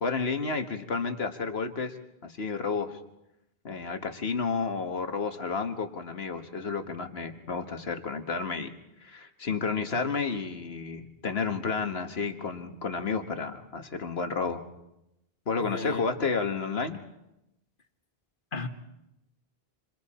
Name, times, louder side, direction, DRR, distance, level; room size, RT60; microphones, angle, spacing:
voice 1, 0.0-2.0 2.2-3.0 3.6-8.7 9.0-14.6 15.5-17.0, left 4 dB, 80° left, 7 dB, 1.8 m, -31 dB
voice 2, 15.6-16.0 18.5-18.7, left 3 dB, 55° left, 7 dB, 1.7 m, -34 dB
28.0 x 26.5 x 4.3 m, 0.87 s
omnidirectional pair, 1.0 m